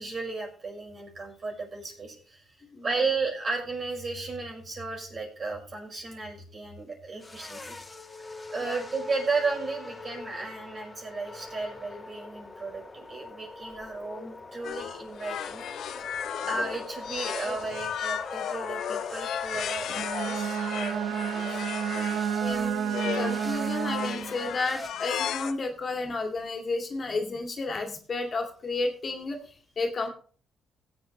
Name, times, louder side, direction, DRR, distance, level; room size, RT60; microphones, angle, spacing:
voice 1, 0.0-2.4 2.8-7.8 8.5-15.6 16.5-21.2 21.9-22.5, right 3 dB, 45° right, 0 dB, 5.5 m, -34 dB
sound 1, 7.2-24.9, left 2 dB, 20° left, 1.9 m, -43 dB
sound 2, 14.6-22.2 22.8-23.5 23.8-25.5, left 9 dB, 70° left, 0.8 m, -34 dB
Bowed string instrument, 19.9-24.4, right 9 dB, 80° right, 0.6 m, -30 dB
voice 2, 22.4-30.1, left 3 dB, 45° left, 3 dB, 2.2 m, -32 dB
17.0 x 8.1 x 3.2 m, 0.42 s
supercardioid pair, 65°, 0 cm